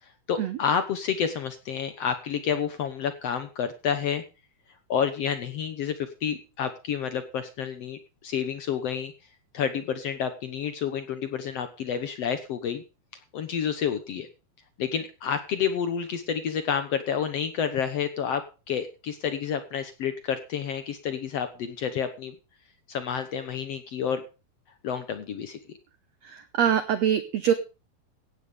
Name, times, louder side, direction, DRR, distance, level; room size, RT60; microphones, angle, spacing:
voice 1, 0.3-4.2 4.9-8.0 8.2-9.1 9.5-12.8 13.3-14.3 14.8-22.3 22.9-24.2 24.8-25.6, left 7 dB, 70° left, 10 dB, 1.5 m, -29 dB
voice 2, 26.6-27.5, right 9 dB, 85° right, 12 dB, 1.5 m, -23 dB
16.5 x 8.5 x 5.1 m, 0.33 s
omnidirectional pair, 4.3 m